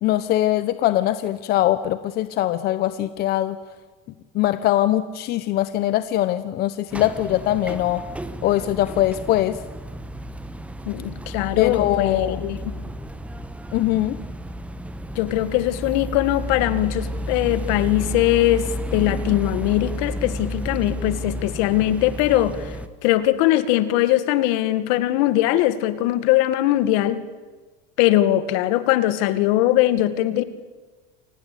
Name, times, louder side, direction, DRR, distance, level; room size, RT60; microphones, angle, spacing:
voice 1, 0.0-3.6 4.3-8.0 8.4-9.6 11.6-12.4 13.7-14.2, left 13 dB, 50° left, 12 dB, 1.0 m, -22 dB
sound 1, 6.9-22.9, equal, 5° right, 1.2 m, -32 dB
voice 2, 10.9-12.6 15.2-22.8 23.0-27.2 28.0-30.4, left 14 dB, 75° left, 12 dB, 2.0 m, -21 dB
28.5 x 19.0 x 8.5 m, 1.3 s
cardioid pair, 140°, 21 cm